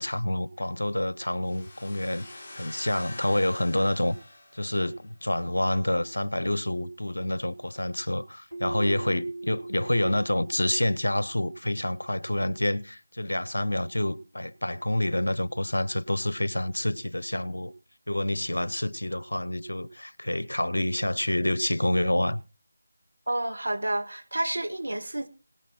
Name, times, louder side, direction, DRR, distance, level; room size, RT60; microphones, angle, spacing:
voice 1, 0.0-4.2 4.5-17.7 18.1-22.4, left 1 dB, 70° left, 0.9 m, -28 dB
sound 1, 1.4-5.2, left 2 dB, 25° left, 3.0 m, -46 dB
Keyboard (musical), 8.5-11.3, right 2 dB, 90° right, 3.3 m, -39 dB
voice 2, 23.3-25.3, right 1 dB, 70° right, 1.5 m, -30 dB
18.0 x 10.0 x 4.4 m
figure-of-eight pair, 160°, 0 cm